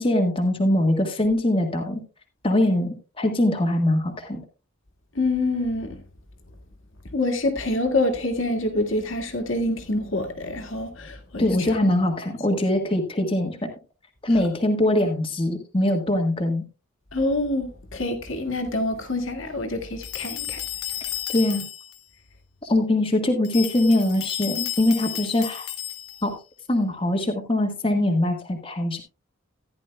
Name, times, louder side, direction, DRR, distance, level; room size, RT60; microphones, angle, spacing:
voice 1, 0.0-2.0 2.4-4.4 11.4-13.7 14.2-16.6 21.3-21.7 22.6-25.7 26.2-26.3 26.7-29.0, left 1 dB, 25° left, 1.5 m, -22 dB
voice 2, 5.2-6.0 7.1-11.8 17.1-20.6, left 2 dB, 60° left, 1.9 m, -26 dB
sound 1, 20.0-22.0 23.4-26.3, left 12 dB, 85° left, 1.1 m, -33 dB
14.5 x 10.5 x 2.2 m
head